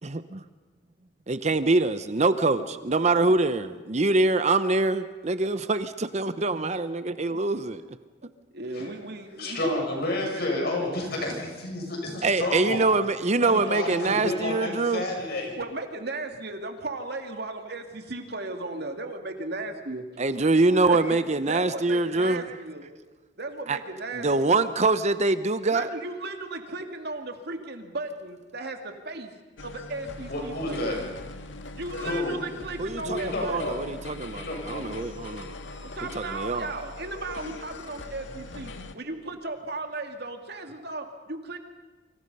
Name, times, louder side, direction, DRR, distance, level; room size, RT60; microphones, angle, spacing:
voice 1, 1.3-7.8 12.2-15.0 20.2-22.4 23.7-23.8 24.1-25.9 32.8-35.5 36.1-36.7, right 3 dB, 40° right, 0.8 m, -24 dB
voice 2, 8.5-10.1 10.3-10.7 13.7-13.8 14.2-14.3 15.6-20.0 20.6-21.2 21.5-22.9 23.4-24.6 25.7-29.3 29.6-30.9 31.7-33.7 35.8-41.6, right 2 dB, 60° right, 2.5 m, -36 dB
voice 3, 9.4-12.8 13.4-15.5 30.3-31.0 32.0-32.3 33.0-33.7 34.3-34.8, left 2 dB, 60° left, 7.3 m, -30 dB
sound 1, 29.6-39.0, left 2 dB, 85° left, 1.7 m, -41 dB
29.0 x 25.0 x 5.6 m
head